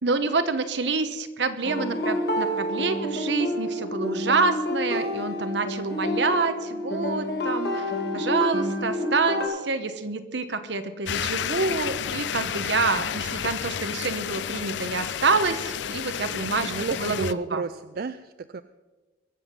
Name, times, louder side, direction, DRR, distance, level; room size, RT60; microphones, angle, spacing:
voice 1, 0.0-7.8 8.1-16.7 17.0-17.6, right 4 dB, 75° right, 10 dB, 1.1 m, -27 dB
sound 1, 1.6-9.4, left 1 dB, 60° left, 2.4 m, -28 dB
sound 2, 11.1-17.3, left 8 dB, 75° left, 0.4 m, -31 dB
voice 2, 16.2-18.6, right 4 dB, 55° right, 12 dB, 0.4 m, -32 dB
22.5 x 7.9 x 5.5 m, 1.2 s
head